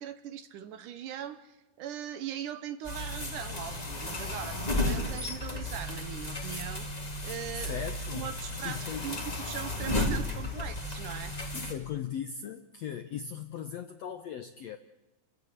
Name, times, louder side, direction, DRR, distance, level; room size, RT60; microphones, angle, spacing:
voice 1, 0.0-6.9 7.2-7.8 8.1-11.4, right 9 dB, 70° right, 11 dB, 2.3 m, -40 dB
sound 1, 2.8-11.7, left 2 dB, 15° left, 1.9 m, -34 dB
voice 2, 7.6-8.3 8.6-9.1 11.5-14.8, left 9 dB, 75° left, 8 dB, 1.5 m, -38 dB
29.5 x 15.0 x 9.5 m, 1.0 s
omnidirectional pair, 4.3 m